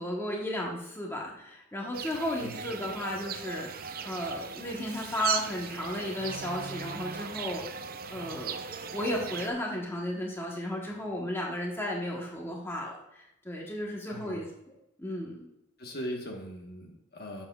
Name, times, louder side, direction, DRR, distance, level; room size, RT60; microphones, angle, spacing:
voice 1, 0.0-3.7 4.0-7.6 8.1-8.6 8.9-14.5 15.0-15.5, left 1 dB, 10° left, -2 dB, 1.2 m, -34 dB
sound 1, 1.9-9.5, right 6 dB, 45° right, 0.5 m, -38 dB
voice 2, 2.4-2.7 14.1-14.5 15.8-17.5, equal, 50° left, 1 dB, 1.3 m, -40 dB
Shatter, 4.8-5.8, right 1 dB, 5° right, 2.3 m, -52 dB
11.5 x 7.2 x 2.4 m, 0.83 s
head